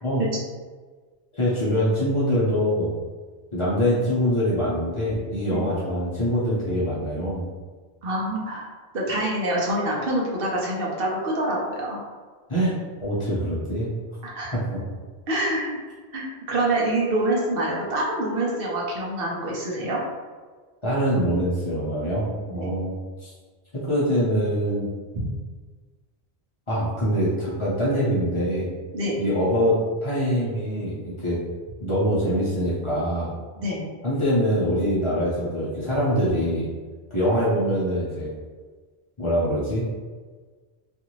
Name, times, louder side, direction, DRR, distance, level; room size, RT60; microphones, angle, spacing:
voice 1, 1.3-2.9 3.5-7.4 12.5-12.7 13.0-13.9 14.5-14.8 20.8-23.3 23.7-24.9 26.7-28.7 29.2-31.4 31.8-33.3 34.0-36.7 37.1-38.3 39.2-39.8, equal, 35° left, -9 dB, 0.7 m, -24 dB
voice 2, 8.0-8.7 8.9-12.0 14.2-14.5 15.3-15.8 16.1-20.0 22.5-22.7 25.1-25.3 28.9-29.2 33.6-33.8, right 1 dB, 65° right, -3 dB, 0.8 m, -26 dB
2.6 x 2.4 x 3.0 m, 1.4 s
omnidirectional pair, 1.1 m